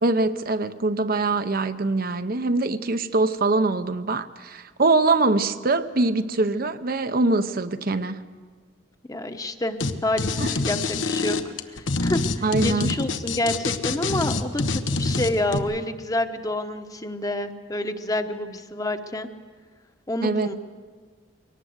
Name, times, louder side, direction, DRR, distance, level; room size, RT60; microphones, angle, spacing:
voice 1, 0.0-8.2 10.4-10.5 12.4-12.9 20.2-20.5, right 3 dB, 50° right, 10 dB, 0.8 m, -23 dB
voice 2, 9.1-9.8 10.0-11.4 11.7-19.3 20.1-20.5, left 1 dB, 20° left, 7 dB, 1.0 m, -28 dB
sound 1, 9.8-9.9 10.2-15.6, left 3 dB, 80° left, 1.2 m, -25 dB
23.0 x 18.5 x 8.0 m, 1.5 s
head